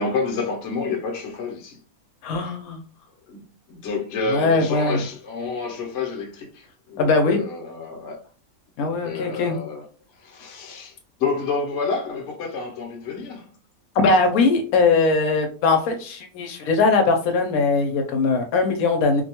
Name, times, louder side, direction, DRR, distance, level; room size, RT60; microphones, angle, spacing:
voice 1, 0.0-1.8 2.4-2.6 3.3-3.4 3.7-8.2 8.8-9.9 10.2-13.5, left 4 dB, 65° left, 1.0 m, -29 dB
voice 2, 2.2-2.8 4.3-5.0 7.0-7.4 8.8-9.6 14.0-19.2, left 3 dB, 85° left, 1.1 m, -20 dB
2.6 x 2.2 x 2.8 m
omnidirectional pair, 1.5 m